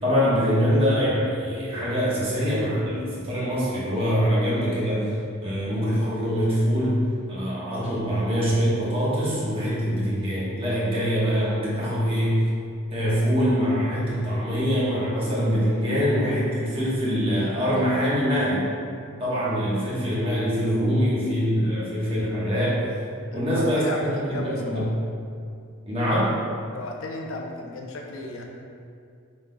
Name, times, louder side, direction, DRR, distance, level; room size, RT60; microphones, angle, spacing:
voice 1, 0.0-5.1 5.4-7.0 7.3-12.5 12.9-18.7 19.2-22.9 23.3-23.8 24.1-24.9 25.8-26.3, equal, 25° right, -8 dB, 1.1 m, -24 dB
voice 2, 23.2-24.8 26.7-28.4, left 2 dB, 65° left, 0 dB, 0.6 m, -35 dB
5.7 x 3.8 x 2.2 m, 2.4 s
head